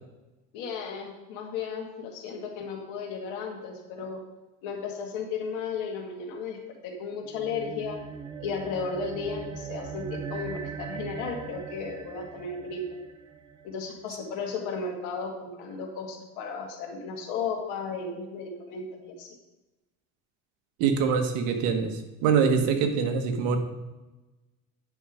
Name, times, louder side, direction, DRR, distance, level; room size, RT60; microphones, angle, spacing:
voice 1, 0.5-4.2 4.6-8.0 8.4-13.0 13.6-19.3, left 5 dB, 80° left, 2 dB, 2.2 m, -34 dB
sound 1, 7.2-13.9, right 6 dB, 15° right, 0.4 m, -40 dB
voice 2, 20.8-23.6, right 6 dB, 70° right, 5 dB, 1.4 m, -24 dB
9.7 x 5.7 x 5.0 m, 1.1 s
cardioid pair, 155°, 30 cm